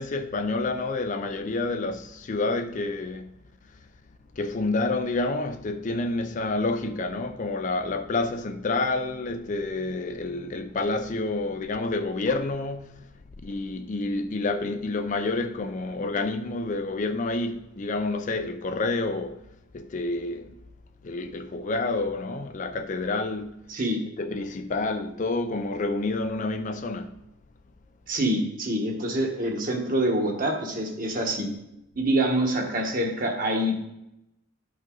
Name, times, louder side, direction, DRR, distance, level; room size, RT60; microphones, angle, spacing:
voice 1, 0.0-3.4 4.4-13.1 13.4-19.4 19.7-20.5 21.0-23.7 24.2-27.2, left 3 dB, 40° left, 0.4 m, -29 dB
voice 2, 28.1-31.5 31.9-33.7, right 1 dB, 45° right, 1.4 m, -26 dB
10.5 x 5.4 x 3.9 m
head